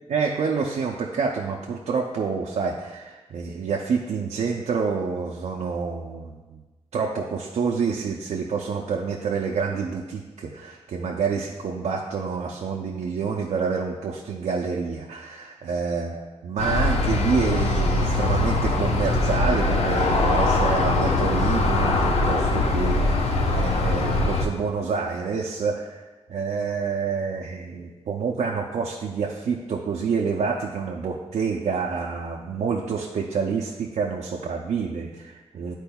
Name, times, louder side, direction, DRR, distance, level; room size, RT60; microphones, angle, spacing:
voice 1, 0.1-6.6 6.9-26.0 26.3-35.7, right 5 dB, 90° right, -1 dB, 0.6 m, -28 dB
Aircraft, 16.6-24.5, left 2 dB, 70° left, 0.7 m, -22 dB
10.5 x 4.4 x 2.3 m, 1.2 s
wide cardioid pair, 140°, 11 cm